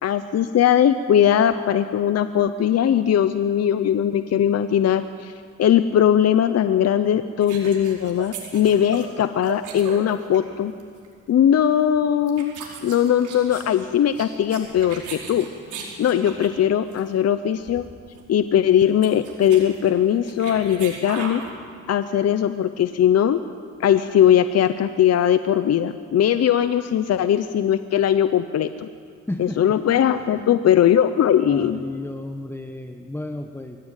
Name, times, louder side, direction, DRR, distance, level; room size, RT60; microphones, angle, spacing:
voice 1, 0.0-5.3 5.6-10.7 11.3-12.5 12.8-15.5 16.0-17.8 18.3-21.4 21.9-23.4 23.8-28.9 29.4-31.8, left 10 dB, 55° left, 11 dB, 0.8 m, -19 dB
sound 1, 7.4-10.5 10.8-11.1 11.8-12.0 12.3-16.6 16.9-17.1 17.3-17.4 17.6-17.9 18.2-18.3 18.7-21.5, right 6 dB, 80° right, 4.8 m, -38 dB
voice 2, 29.3-29.6 30.2-30.5 31.5-33.8, left 1 dB, 10° left, 5 dB, 1.2 m, -33 dB
22.5 x 16.5 x 9.1 m, 2.1 s
cardioid pair, 90°, 30 cm